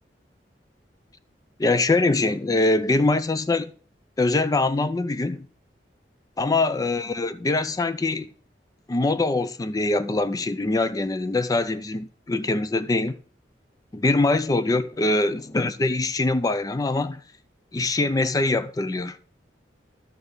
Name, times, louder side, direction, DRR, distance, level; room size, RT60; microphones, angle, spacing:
voice 1, 1.6-3.7 4.2-5.5 6.4-8.3 8.9-13.2 13.9-17.2 17.7-19.2, left 2 dB, 20° left, 0.4 m, -23 dB
12.0 x 4.6 x 5.0 m
head